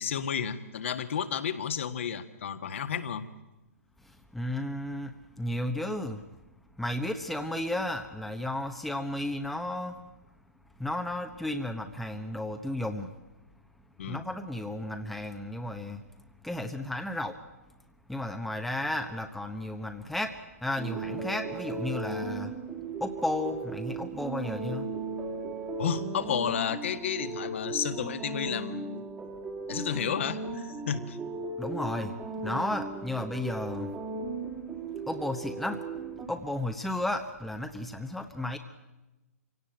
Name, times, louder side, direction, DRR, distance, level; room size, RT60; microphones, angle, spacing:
voice 1, 0.0-3.3 14.0-14.2 25.8-29.1 29.7-31.2, left 8 dB, 50° left, 10 dB, 1.6 m, -32 dB
voice 2, 4.0-6.2 6.8-10.0 10.8-13.1 14.1-16.0 16.4-17.4 18.1-22.6 23.0-24.9 31.6-34.0 35.0-35.8 36.2-38.6, left 1 dB, ahead, 5 dB, 1.1 m, -33 dB
sound 1, 20.8-36.3, right 3 dB, 15° right, 1.9 m, -37 dB
25.5 x 17.0 x 8.9 m, 1.1 s
figure-of-eight pair, 125°, 8 cm